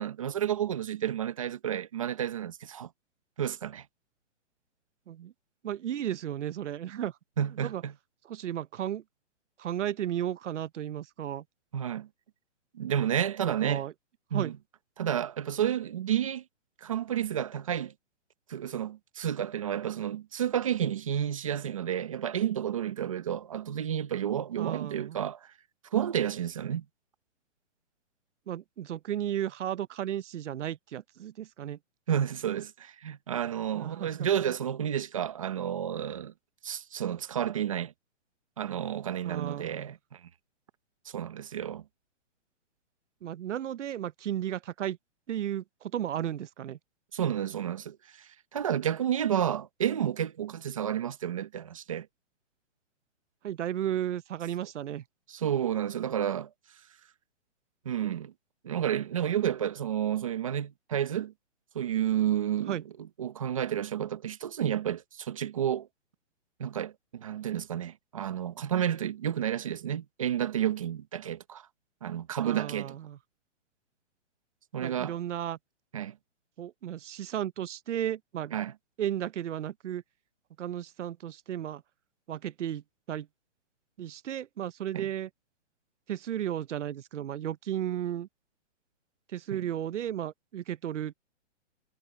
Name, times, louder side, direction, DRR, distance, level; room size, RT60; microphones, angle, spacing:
voice 1, 0.0-2.9 3.4-3.8 7.4-7.9 11.7-12.1 12.7-13.8 14.3-14.6 15.0-16.4 16.8-17.9 18.5-25.5 25.9-26.8 32.1-36.3 36.6-37.9 38.6-40.2 41.1-41.8 47.1-52.1 55.3-56.5 57.8-58.3 58.6-61.3 61.7-62.7 63.2-65.9 66.6-71.6 72.0-73.0 74.7-75.2 75.9-76.2 78.5-78.7 84.9-85.1 89.5-89.6, right 10 dB, 30° right, 0.9 m, -31 dB
voice 2, 5.6-7.1 7.6-7.8 8.2-9.0 9.6-11.4 13.4-13.9 14.3-14.5 24.6-25.2 28.5-31.8 33.7-34.5 39.2-39.9 43.2-45.0 45.3-46.8 53.4-55.0 62.7-62.8 72.4-73.2 74.8-75.6 76.6-78.6 79.0-80.0 80.6-81.8 82.3-82.8 83.1-83.3 84.0-85.3 86.1-88.3 89.3-91.1, right 11 dB, 75° right, 0.7 m, -34 dB
hypercardioid pair, 180°, 37 cm